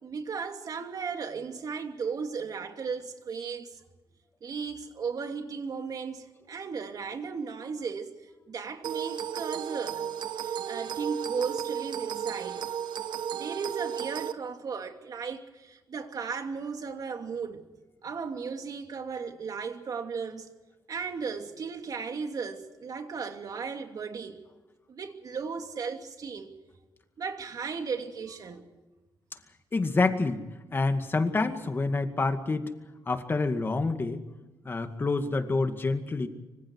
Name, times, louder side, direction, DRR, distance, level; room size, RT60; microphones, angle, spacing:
voice 1, 0.0-3.8 4.4-12.7 13.3-17.6 18.0-20.5 20.9-24.4 24.9-26.5 27.2-28.6, right 5 dB, 50° right, 2.7 m, -36 dB
sound 1, 8.8-14.3, right 9 dB, 70° right, 1.2 m, -34 dB
voice 2, 29.7-30.4 30.7-32.7 33.1-34.2 34.6-36.3, left 3 dB, 30° left, 2.1 m, -27 dB
26.0 x 25.0 x 4.8 m
cardioid pair, 130°, 8 cm